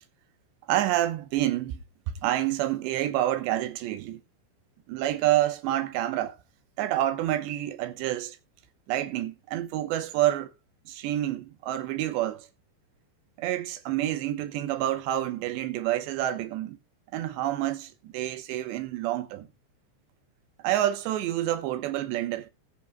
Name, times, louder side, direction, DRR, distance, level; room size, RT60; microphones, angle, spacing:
voice 1, 0.7-1.8 2.1-4.2 4.9-6.4 6.8-8.4 8.9-10.5 10.9-12.5 13.4-16.8 17.1-19.5 20.6-22.5, right 13 dB, 75° right, 2.8 m, -28 dB
19.0 x 7.2 x 2.2 m
omnidirectional pair, 5.7 m